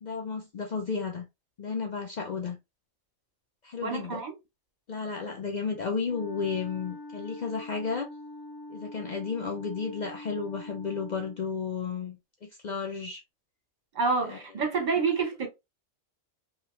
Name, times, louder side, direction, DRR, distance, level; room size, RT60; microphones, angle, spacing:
voice 1, 0.0-1.2 1.6-2.6 3.6-4.2 4.9-8.1 8.7-13.2 14.2-14.4, left 5 dB, 80° left, 0.4 m, -33 dB
voice 2, 3.8-4.3 13.9-15.5, right 4 dB, 35° right, 1.0 m, -28 dB
Wind instrument woodwind instrument, 6.0-11.4, left 1 dB, 25° left, 0.5 m, -44 dB
2.9 x 2.4 x 3.0 m
omnidirectional pair, 1.4 m